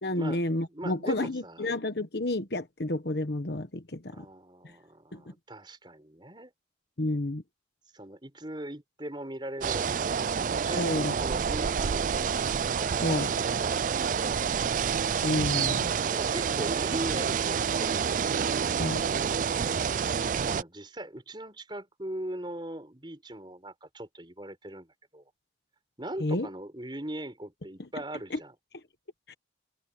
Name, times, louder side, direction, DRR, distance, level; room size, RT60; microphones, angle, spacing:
voice 1, 0.0-4.2 4.6-4.7 5.1-5.2 7.0-7.4 10.8-11.1 13.0-13.3 15.2-15.9 18.8-19.0 26.2-26.5 29.3-29.4, left 1 dB, 60° left, 1.3 m, -30 dB
voice 2, 0.7-1.8 4.1-6.5 7.9-12.2 12.7-14.3 16.1-18.2 19.5-25.2 26.0-28.5, right 1 dB, 25° right, 5.2 m, -40 dB
sound 1, 9.6-20.6, right 6 dB, 45° right, 0.4 m, -28 dB
head